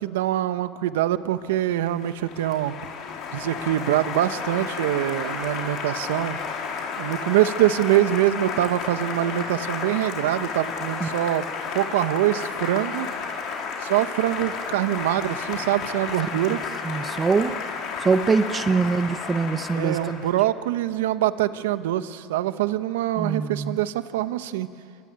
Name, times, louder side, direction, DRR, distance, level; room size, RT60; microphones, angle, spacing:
voice 1, 0.0-2.7 3.3-6.4 7.0-11.4 11.7-13.1 13.8-16.6 19.7-24.7, right 13 dB, 85° right, 11 dB, 1.2 m, -24 dB
Applause, 1.5-20.4, left 5 dB, 55° left, 4.8 m, -32 dB
voice 2, 16.8-17.6 18.0-20.1 23.2-23.8, right 4 dB, 20° right, 11 dB, 1.0 m, -23 dB
28.0 x 23.5 x 9.1 m, 2.3 s
supercardioid pair, 115°, 0 cm